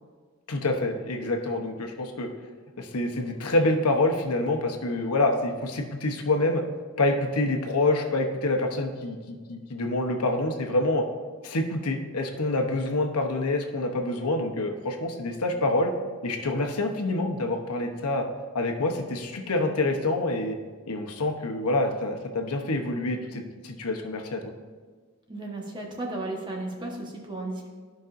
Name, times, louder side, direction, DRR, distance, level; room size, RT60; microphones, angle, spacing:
voice 1, 0.5-2.3 2.8-6.6 7.0-11.0 11.4-15.9 16.2-18.2 18.5-20.6 20.9-24.4, left 2 dB, 90° left, 3 dB, 0.9 m, -27 dB
voice 2, 25.3-27.7, right 2 dB, 20° right, -1 dB, 1.2 m, -34 dB
14.5 x 5.3 x 2.6 m, 1.5 s
head